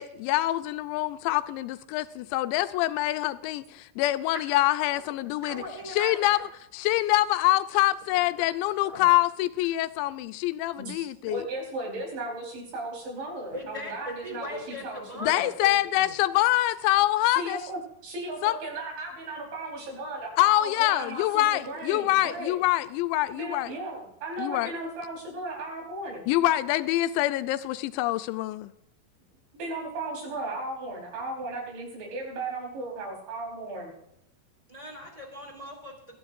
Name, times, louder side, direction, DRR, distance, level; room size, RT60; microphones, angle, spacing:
voice 1, 0.0-5.6 6.0-6.4 6.7-11.4 15.2-17.6 18.4-18.5 20.4-23.7 24.4-24.7 26.3-28.7, left 16 dB, 85° left, 2.9 m, -25 dB
voice 2, 5.4-6.4 8.8-9.1 13.5-16.1 34.7-36.2, equal, 10° right, 3.9 m, -39 dB
voice 3, 10.8-15.5 17.2-22.6 23.3-26.3 29.5-33.9, right 2 dB, 80° right, 6.7 m, -36 dB
21.0 x 13.0 x 2.6 m
omnidirectional pair, 5.1 m